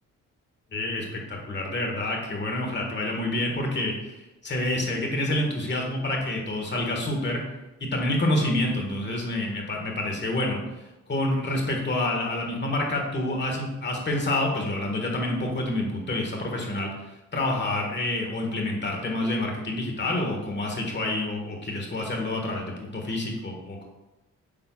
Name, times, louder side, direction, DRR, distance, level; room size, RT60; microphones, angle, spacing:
voice 1, 0.7-7.4 7.8-10.6 11.1-16.9 17.3-23.8, left 1 dB, 35° left, 1 dB, 1.6 m, -28 dB
8.8 x 5.4 x 2.4 m, 1.0 s
cardioid pair, 120°, 31 cm